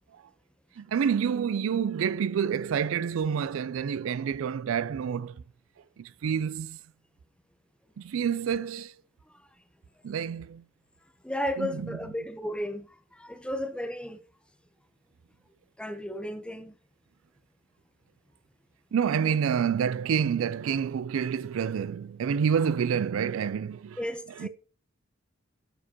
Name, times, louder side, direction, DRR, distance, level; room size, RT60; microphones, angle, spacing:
voice 1, 0.8-5.4 6.0-6.8 8.0-8.9 10.0-10.6 11.6-12.0 18.9-24.0 24.4-24.5, right 7 dB, 75° right, 0.3 m, -28 dB
voice 2, 11.2-14.2 15.8-16.7 24.0-24.5, left 1 dB, 5° left, 0.7 m, -34 dB
11.0 x 4.9 x 2.9 m
head